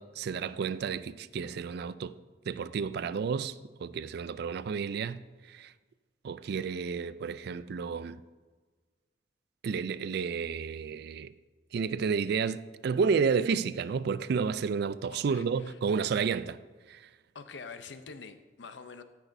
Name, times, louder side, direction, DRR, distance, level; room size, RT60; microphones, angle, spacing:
voice 1, 0.0-2.1 2.5-5.2 5.5-5.7 6.2-8.2 9.6-11.3 11.7-16.6 16.9-17.0, right 5 dB, 60° right, 0.3 m, -31 dB
voice 2, 15.1-15.8 17.3-19.0, left 5 dB, 70° left, 0.6 m, -46 dB
17.0 x 6.0 x 2.6 m
head